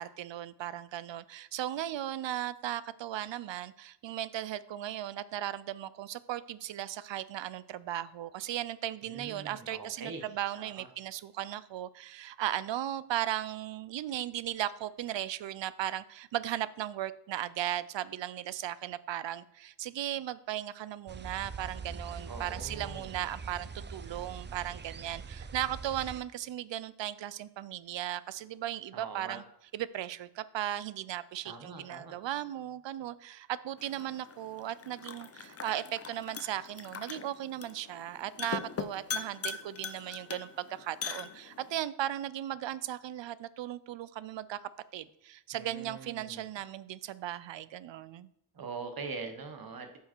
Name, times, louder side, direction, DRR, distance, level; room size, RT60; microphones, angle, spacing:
voice 1, 0.0-29.4 29.7-48.3, right 12 dB, 85° right, 17 dB, 0.6 m, -37 dB
voice 2, 9.0-10.3 10.5-10.9 22.3-23.1 28.9-29.4 31.4-32.2 45.5-46.4 48.5-50.0, right 4 dB, 55° right, 6 dB, 1.4 m, -43 dB
sound 1, 21.1-26.2, right 5 dB, 25° right, 0.4 m, -43 dB
sound 2, 33.8-41.8, left 6 dB, 35° left, 0.6 m, -41 dB
8.8 x 5.6 x 4.5 m, 0.78 s
wide cardioid pair, 140°, 43 cm